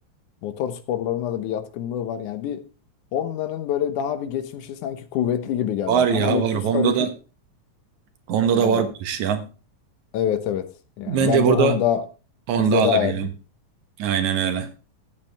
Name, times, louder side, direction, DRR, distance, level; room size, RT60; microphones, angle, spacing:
voice 1, 0.4-2.6 3.1-7.1 8.5-8.9 10.1-10.7 11.0-12.0 12.6-13.2, left 9 dB, 90° left, 2.5 m, -26 dB
voice 2, 5.9-7.1 8.3-9.4 11.1-11.8 12.5-13.3 14.0-14.7, right 7 dB, 75° right, 2.6 m, -21 dB
13.5 x 8.6 x 3.4 m
omnidirectional pair, 3.4 m